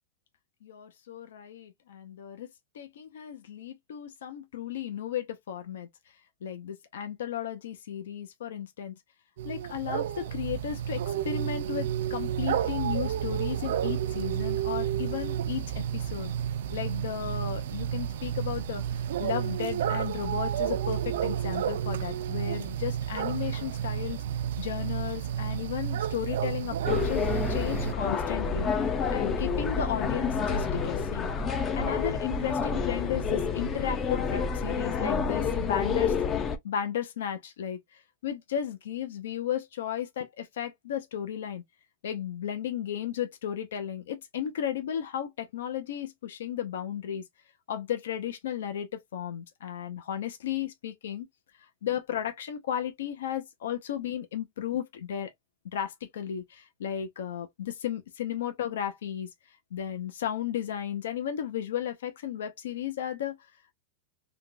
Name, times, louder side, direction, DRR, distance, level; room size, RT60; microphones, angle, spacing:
voice 1, 0.6-2.5 2.7-5.9 6.4-8.9 9.4-16.3 16.7-18.8 19.2-24.2 24.6-28.7 29.1-31.3 31.7-36.1 36.6-41.6 42.0-47.2 47.7-51.3 51.8-55.3 55.7-59.3 59.7-63.4, left 10 dB, 80° left, 0.7 m, -34 dB
sound 1, 9.4-27.9, right 10 dB, 65° right, 0.4 m, -31 dB
sound 2, 26.9-36.6, left 5 dB, 15° left, 0.4 m, -29 dB
3.5 x 2.3 x 2.5 m
supercardioid pair, 170°, 0 cm